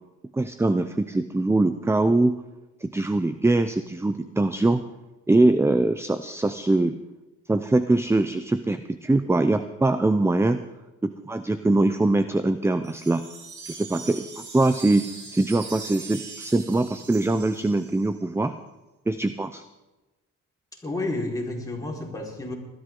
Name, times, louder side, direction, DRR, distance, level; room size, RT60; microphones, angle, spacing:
voice 1, 0.3-2.4 2.8-4.8 5.3-7.0 7.5-10.6 11.0-13.2 13.7-18.5 19.1-19.6, right 2 dB, 10° right, 11 dB, 0.6 m, -22 dB
sound 1, 12.8-18.2, right 5 dB, 75° right, 3.1 m, -41 dB
voice 2, 20.7-22.5, left 2 dB, 10° left, -3 dB, 4.5 m, -31 dB
20.5 x 13.0 x 3.8 m, 1.1 s
cardioid pair, 90°, 30 cm